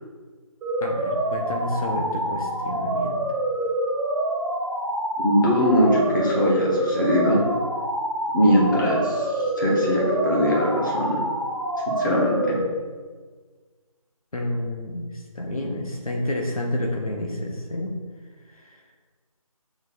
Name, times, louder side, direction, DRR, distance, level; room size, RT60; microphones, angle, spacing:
sound 1, 0.6-12.6, right 1 dB, 5° right, 2.2 m, -26 dB
voice 1, 0.8-3.2 14.3-17.9 18.4-18.8, left 1 dB, 75° left, 0 dB, 1.7 m, -29 dB
voice 2, 5.2-7.4 8.3-11.2 11.9-12.7, equal, 35° left, -3 dB, 2.1 m, -21 dB
7.1 x 6.6 x 4.2 m, 1.5 s
figure-of-eight pair, 165°, 18 cm